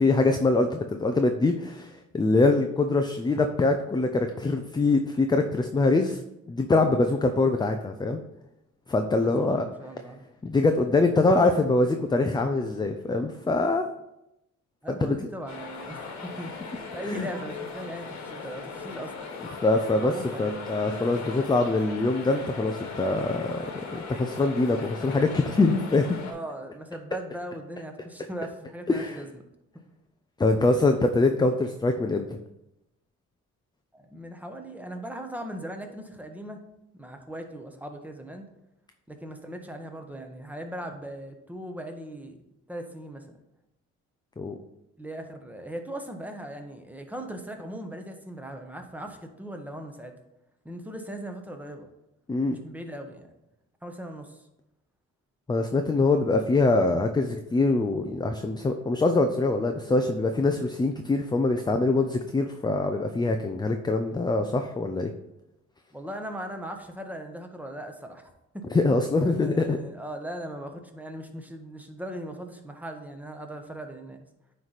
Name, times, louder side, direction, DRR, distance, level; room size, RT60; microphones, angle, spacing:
voice 1, 0.0-6.2 6.5-8.2 8.9-9.6 10.4-13.8 15.0-15.2 17.1-17.3 19.6-23.7 23.9-26.1 28.9-29.2 30.4-32.3 44.4-44.6 52.3-52.6 55.5-65.1 68.7-69.8, left 3 dB, 15° left, 6 dB, 0.4 m, -24 dB
voice 2, 9.2-10.2 14.8-16.5 16.9-19.3 20.0-20.5 26.2-29.3 33.9-36.6 36.9-38.4 39.1-42.4 42.7-43.4 45.0-50.1 50.6-51.9 52.5-53.3 53.8-54.4 60.7-60.8 65.9-68.7 69.4-74.2, right 1 dB, 5° right, 4 dB, 0.9 m, -39 dB
sound 1, 15.5-26.3, left 4 dB, 70° left, 1.3 m, -39 dB
9.4 x 3.2 x 4.0 m, 0.87 s
cardioid pair, 90°, 30 cm